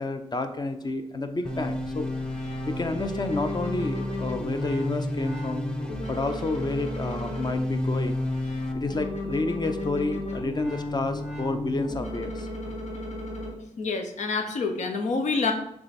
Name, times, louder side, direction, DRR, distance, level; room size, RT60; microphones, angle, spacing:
voice 1, 0.0-2.1 2.7-5.6 6.1-8.2 8.7-12.7, left 2 dB, 35° left, 8 dB, 0.7 m, -30 dB
sound 1, 1.4-8.7, equal, 5° left, 0.8 m, -34 dB
sound 2, 1.5-13.5, left 2 dB, 70° left, 1.4 m, -33 dB
voice 2, 13.8-15.5, left 4 dB, 90° left, 5 dB, 0.8 m, -27 dB
6.3 x 3.6 x 4.2 m, 0.75 s
cardioid pair, 55°, 12 cm